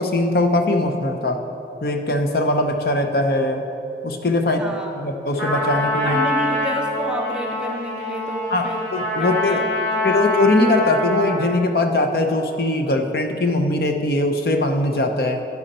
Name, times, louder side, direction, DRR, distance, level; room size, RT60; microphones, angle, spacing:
voice 1, 0.0-1.4 1.8-3.7 4.0-4.6 5.0-6.2 8.5-9.6 10.0-15.4, left 2 dB, 60° left, 5 dB, 0.7 m, -21 dB
voice 2, 4.4-5.1 6.0-8.9 9.2-10.4, equal, 5° right, 2 dB, 0.6 m, -30 dB
Trumpet, 5.4-11.6, left 1 dB, 90° left, 2.7 m, -24 dB
10.5 x 9.5 x 4.3 m, 2.9 s
head